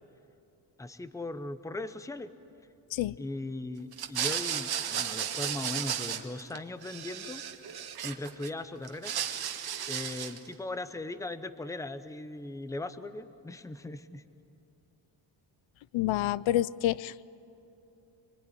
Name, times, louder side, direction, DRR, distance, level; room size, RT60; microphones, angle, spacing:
voice 1, 0.8-2.3 3.2-7.4 8.0-9.1 9.9-14.2, left 2 dB, 5° left, 12 dB, 0.7 m, -38 dB
sound 1, 3.9-6.6 6.8-8.5 8.8-10.5, right 9 dB, 55° right, 1.5 m, -34 dB
voice 2, 15.9-17.2, left 14 dB, 90° left, 19 dB, 0.6 m, -28 dB
24.5 x 24.5 x 9.9 m, 2.9 s
wide cardioid pair, 180°, 45 cm